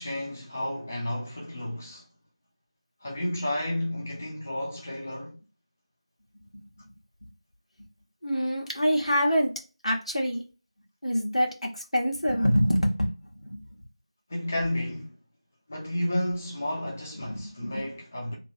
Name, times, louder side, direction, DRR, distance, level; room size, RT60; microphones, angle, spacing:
voice 1, 0.0-2.0 3.0-5.4 14.3-15.1 15.7-18.3, left 1 dB, 20° left, 0.7 m, -32 dB
voice 2, 8.2-9.5 9.8-10.4 11.0-13.1 13.4-13.6 17.2-17.9 18.2-18.4, equal, 85° left, 1.5 m, -26 dB
3.0 x 3.0 x 2.8 m
figure-of-eight pair, 170°, 3 cm